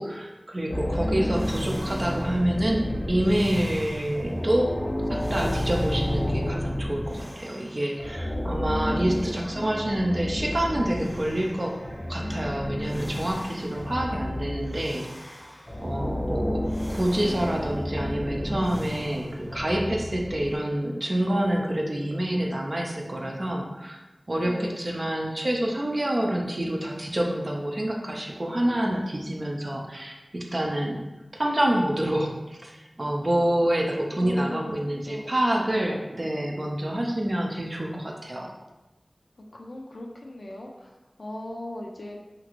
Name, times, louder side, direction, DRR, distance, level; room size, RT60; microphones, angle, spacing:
voice 1, 0.0-4.7 5.1-11.8 12.1-15.3 15.8-16.6 16.9-24.0 24.3-31.0 31.3-38.5, right 1 dB, 50° right, 0 dB, 0.4 m, -27 dB
sound 1, 0.7-7.7 8.0-20.6, left 1 dB, 15° left, 0.6 m, -31 dB
voice 2, 8.7-9.5 24.4-24.8 34.1-35.4 39.5-42.2, left 1 dB, 75° left, 0 dB, 0.4 m, -38 dB
2.9 x 2.5 x 2.9 m, 1.1 s
wide cardioid pair, 45°, 0 cm